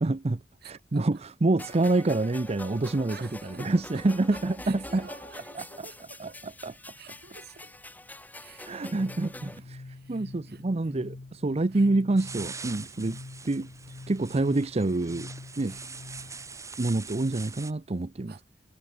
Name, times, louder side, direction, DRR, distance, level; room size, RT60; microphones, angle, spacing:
voice 1, 0.0-5.1 5.5-5.6 6.2-6.3 6.6-6.7 8.6-13.2 13.4-13.7 14.1-15.3 15.6-15.8 16.8-18.4, right 2 dB, 35° right, 0.6 m, -27 dB
voice 2, 0.6-1.2 3.1-3.7 3.9-4.0 4.3-6.4 6.9-7.8 8.3-11.1 11.7-11.9 15.6-16.5 18.3-18.4, right 6 dB, 55° right, 2.9 m, -52 dB
sound 1, 1.6-9.6, left 1 dB, 10° left, 3.3 m, -45 dB
sound 2, 9.0-16.6, left 2 dB, 55° left, 0.8 m, -46 dB
sound 3, 12.2-17.7, right 4 dB, 15° right, 2.1 m, -43 dB
head